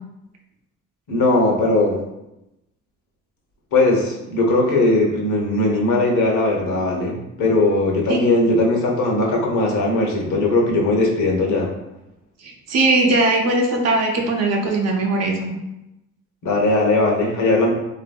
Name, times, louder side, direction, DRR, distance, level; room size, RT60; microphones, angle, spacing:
voice 1, 1.1-2.0 3.7-11.7 16.4-17.7, left 2 dB, 75° left, 0 dB, 0.7 m, -19 dB
voice 2, 12.4-15.5, right 2 dB, 60° right, 2 dB, 0.6 m, -20 dB
2.7 x 2.5 x 2.2 m, 0.92 s
cardioid pair, 90°, 30 cm